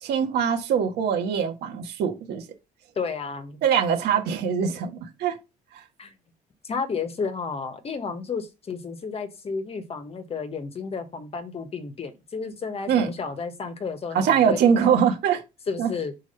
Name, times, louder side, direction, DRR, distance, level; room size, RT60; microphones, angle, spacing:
voice 1, 0.0-2.4 3.6-5.4 5.7-5.8 12.9-13.1 14.1-15.4 15.8-15.9, right 7 dB, 75° right, 1.7 m, -22 dB
voice 2, 2.9-3.6 6.0-6.1 6.6-15.0 15.7-16.1, left 5 dB, 35° left, 1.3 m, -32 dB
5.0 x 4.7 x 5.5 m
cardioid pair, 110°, 17 cm